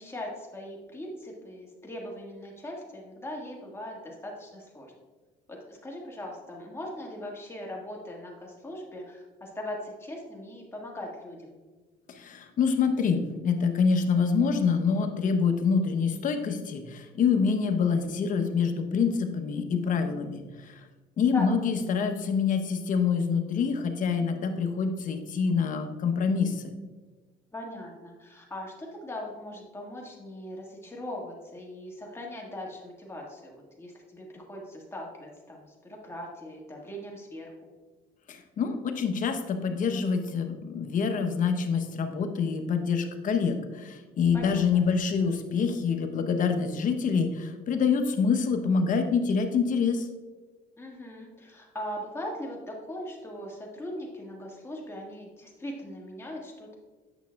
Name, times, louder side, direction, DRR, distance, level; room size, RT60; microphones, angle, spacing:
voice 1, 0.0-4.9 5.5-11.6 21.3-21.5 27.5-37.5 44.3-44.8 50.8-56.7, left 1 dB, 15° left, -1 dB, 1.7 m, -40 dB
voice 2, 12.2-20.4 21.2-26.6 38.3-50.1, left 5 dB, 50° left, 6 dB, 0.9 m, -26 dB
9.1 x 6.1 x 2.3 m, 1.3 s
cardioid pair, 110°, 17 cm